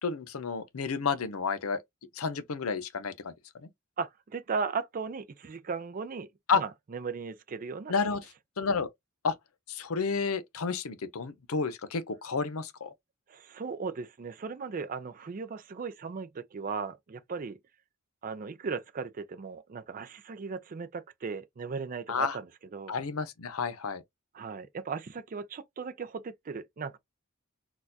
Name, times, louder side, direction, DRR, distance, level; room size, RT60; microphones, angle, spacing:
voice 1, 0.0-1.8 2.1-3.7 6.5-6.6 7.9-8.2 8.6-8.9 9.2-9.4 9.7-12.9 22.1-22.4 22.9-24.0, left 5 dB, 85° left, 0.6 m, -31 dB
voice 2, 4.0-6.3 6.5-7.9 13.3-17.6 18.2-22.9 24.3-27.0, right 5 dB, 40° right, 0.4 m, -37 dB
4.2 x 2.3 x 2.7 m
head